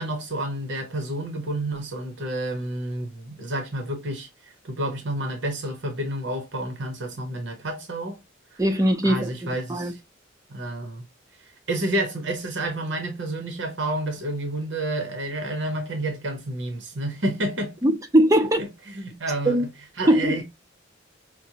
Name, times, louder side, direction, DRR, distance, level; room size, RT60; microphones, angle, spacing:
voice 1, 0.0-8.2 8.5-8.6 9.0-10.0 10.5-11.0 11.4-17.7 18.6-19.7 20.0-20.4, right 1 dB, 65° right, 0.8 m, -30 dB
voice 2, 8.6-9.3 9.7-9.9 17.8-18.6 19.5-19.6 20.1-20.3, right 1 dB, 15° right, 0.6 m, -20 dB
5.9 x 2.1 x 2.8 m
head